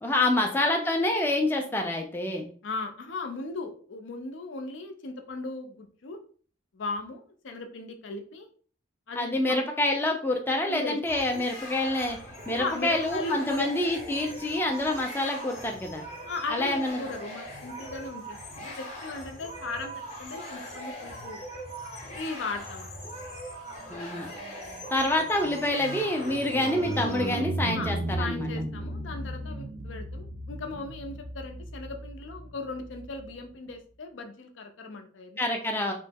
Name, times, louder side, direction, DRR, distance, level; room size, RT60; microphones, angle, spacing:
voice 1, 0.0-2.5 9.2-12.2 12.5-16.1 16.5-17.0 23.9-24.3 24.9-28.5 35.4-35.9, left 1 dB, 10° left, 2 dB, 0.4 m, -27 dB
voice 2, 2.6-6.2 6.7-8.5 9.1-9.6 10.7-11.0 12.5-13.7 16.3-19.9 20.2-21.4 22.2-23.1 27.7-35.4, left 3 dB, 80° left, 5 dB, 0.5 m, -37 dB
sound 1, 11.1-27.4, equal, 35° left, 0.8 m, -41 dB
sound 2, 23.8-33.4, right 1 dB, 50° right, 0.5 m, -36 dB
3.1 x 2.0 x 3.4 m, 0.43 s
head